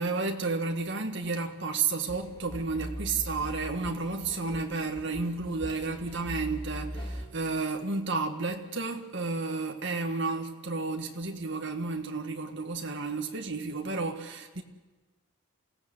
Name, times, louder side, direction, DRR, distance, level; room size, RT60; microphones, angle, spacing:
voice 1, 0.0-14.6, right 3 dB, 55° right, 1.8 m, -32 dB
sound 1, 2.1-7.3, equal, 25° left, 3.3 m, -40 dB
28.0 x 16.5 x 7.9 m
head